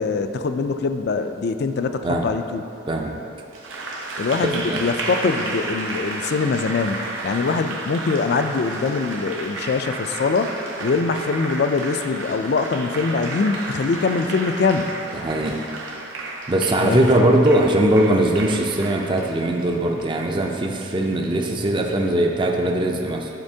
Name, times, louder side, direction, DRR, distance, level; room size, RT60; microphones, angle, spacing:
voice 1, 0.0-2.6 4.2-7.0 7.2-14.9 16.8-17.1, left 4 dB, 55° left, 9 dB, 0.3 m, -23 dB
Applause, 3.5-21.4, right 2 dB, 80° right, 0.8 m, -32 dB
voice 2, 15.1-15.6 16.5-23.3, right 1 dB, 25° right, 1 dB, 0.4 m, -20 dB
11.5 x 4.4 x 2.7 m, 2.6 s
head